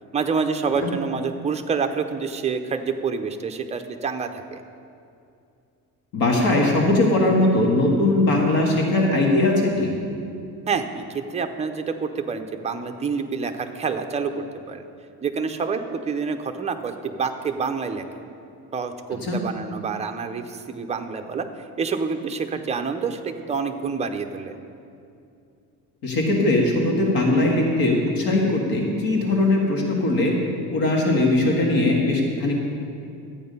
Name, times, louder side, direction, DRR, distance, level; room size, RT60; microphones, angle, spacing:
voice 1, 0.1-4.6 10.7-14.8 15.2-18.0 18.7-21.5 21.8-24.6, right 5 dB, 20° right, 6 dB, 0.5 m, -27 dB
voice 2, 6.1-9.9 19.2-19.4 26.0-30.3 30.7-32.6, left 2 dB, 75° left, -1 dB, 2.0 m, -20 dB
12.5 x 8.6 x 5.4 m, 2.5 s
cardioid pair, 170°, 36 cm